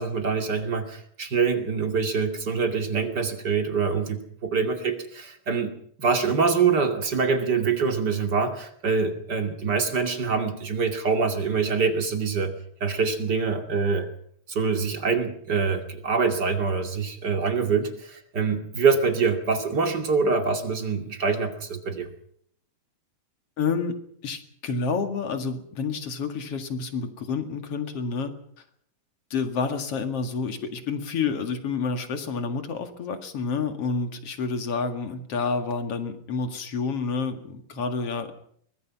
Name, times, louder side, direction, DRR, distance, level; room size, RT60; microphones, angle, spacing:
voice 1, 0.0-5.7 6.0-12.5 12.8-14.1 14.5-22.1, right 5 dB, 35° right, 6 dB, 2.6 m, -25 dB
voice 2, 23.6-23.9 24.2-28.3 29.3-38.3, left 5 dB, 50° left, 7 dB, 2.7 m, -29 dB
24.0 x 20.0 x 6.0 m, 0.64 s
omnidirectional pair, 3.9 m